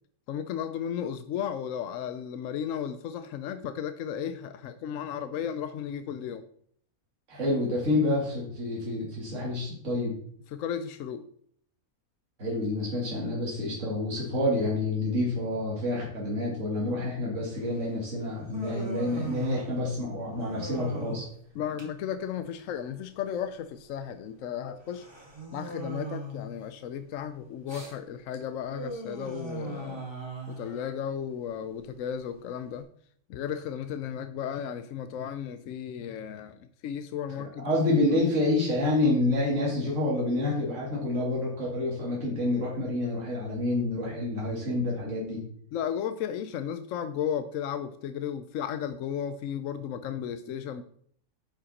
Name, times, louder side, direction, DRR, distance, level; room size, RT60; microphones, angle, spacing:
voice 1, 0.3-6.4 10.5-11.2 21.6-25.1 25.5-30.0 30.5-32.9 33.3-37.6 37.9-38.0 45.7-50.8, left 8 dB, 70° left, 0.9 m, -34 dB
voice 2, 7.3-10.2 12.4-21.3 37.6-45.4, left 2 dB, 55° right, 2.5 m, -28 dB
Human voice, 17.6-32.8, right 2 dB, 20° right, 1.8 m, -41 dB
10.0 x 5.3 x 4.2 m
omnidirectional pair, 1.5 m